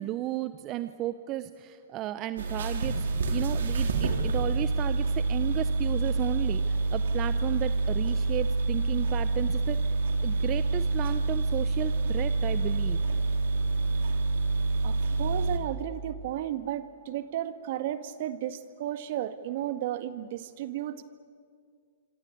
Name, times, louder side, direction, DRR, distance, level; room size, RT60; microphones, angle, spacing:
voice 1, 0.0-9.8 10.2-13.0, right 14 dB, 30° right, 12 dB, 0.9 m, -34 dB
sound 1, 2.4-15.6, right 3 dB, 80° right, 3.6 m, -27 dB
voice 2, 14.8-21.0, right 12 dB, 55° right, 11 dB, 1.7 m, -34 dB
27.0 x 25.5 x 8.5 m, 2.1 s
hypercardioid pair, 135°, 0 cm